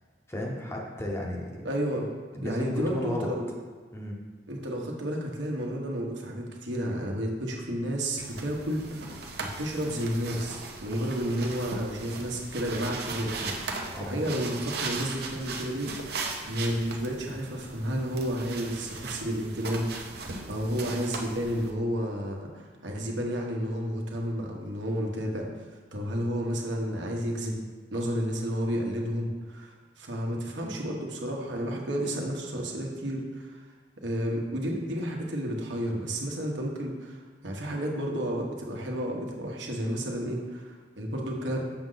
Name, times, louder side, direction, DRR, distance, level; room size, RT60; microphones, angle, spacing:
voice 1, 0.3-1.7 2.3-3.3 3.9-4.2 13.9-14.2, left 1 dB, 15° left, -1 dB, 0.8 m, -33 dB
voice 2, 1.6-2.1 2.4-3.5 4.5-25.5 25.9-27.6 27.9-33.6 34.0-41.6, equal, 75° right, 0 dB, 1.2 m, -31 dB
sound 1, 8.2-21.7, right 3 dB, 55° right, 0.7 m, -38 dB
6.9 x 6.4 x 3.9 m, 1.4 s
head